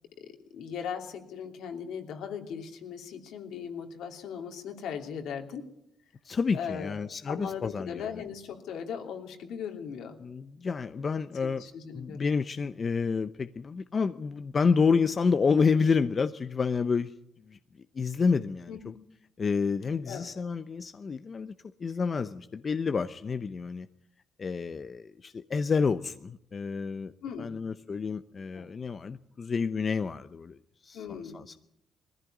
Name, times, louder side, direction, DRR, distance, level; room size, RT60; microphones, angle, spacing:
voice 1, 0.5-5.7 6.5-6.9 7.3-10.2 11.4-12.3 18.7-18.9 20.1-20.3 27.2-27.5 28.5-28.7 30.9-31.4, left 7 dB, 80° left, 4 dB, 3.0 m, -38 dB
voice 2, 6.2-8.1 10.2-11.6 11.9-17.1 17.5-18.9 19.4-21.5 21.8-23.9 24.4-27.1 27.4-30.6 30.8-31.0 31.3-31.5, left 5 dB, 40° left, 11 dB, 0.7 m, -29 dB
20.5 x 15.0 x 9.3 m, 0.79 s
cardioid pair, 90°, 0 cm